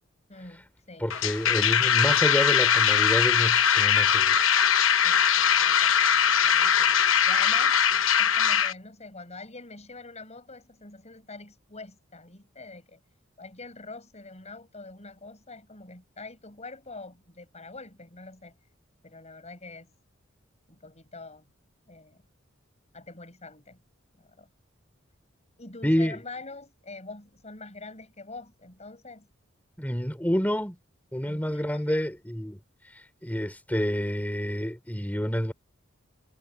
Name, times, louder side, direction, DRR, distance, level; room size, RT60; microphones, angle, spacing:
voice 1, 0.3-1.5 5.0-13.0 13.4-18.6 19.0-19.9 20.7-21.5 21.9-22.2 22.9-23.8 24.1-24.5 25.6-29.3 31.2-32.0, left 3 dB, 35° left, 7.4 m, -45 dB
voice 2, 1.0-4.4 25.8-26.2 29.8-30.8 31.1-32.6 32.8-35.5, equal, 10° left, 4.3 m, -28 dB
sound 1, 1.1-8.7, left 8 dB, 80° left, 1.1 m, -21 dB
head